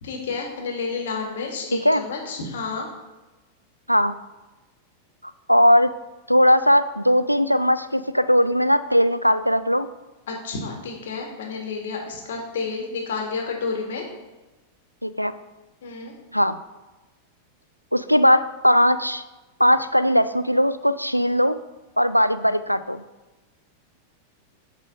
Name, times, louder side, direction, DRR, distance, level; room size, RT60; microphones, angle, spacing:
voice 1, 0.0-2.9 10.3-14.0 15.8-16.1, left 4 dB, 60° left, 1 dB, 1.7 m, -30 dB
voice 2, 5.5-5.9 6.3-9.9 15.0-15.3 16.3-16.6 17.9-19.2 19.6-21.6 22.0-23.0, equal, 90° right, 14 dB, 0.3 m, -19 dB
8.8 x 3.7 x 5.3 m, 1.1 s
figure-of-eight pair, 90°, 0 cm